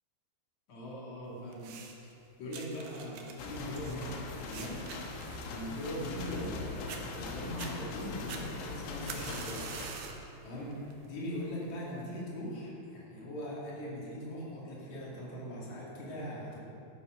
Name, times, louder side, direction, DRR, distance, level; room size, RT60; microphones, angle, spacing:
voice 1, 0.7-1.7 2.4-4.8 5.5-9.7 10.1-16.6, equal, 45° left, -5 dB, 3.3 m, -40 dB
sound 1, 1.5-2.1 2.5-6.6 6.9-7.0 7.4-7.7 8.3-10.3 10.7-11.1 11.8-11.9, right 6 dB, 75° right, 2.1 m, -45 dB
sound 2, 3.4-9.9, left 4 dB, 85° left, 3.6 m, -41 dB
12.0 x 12.0 x 5.0 m, 2.8 s
omnidirectional pair, 5.3 m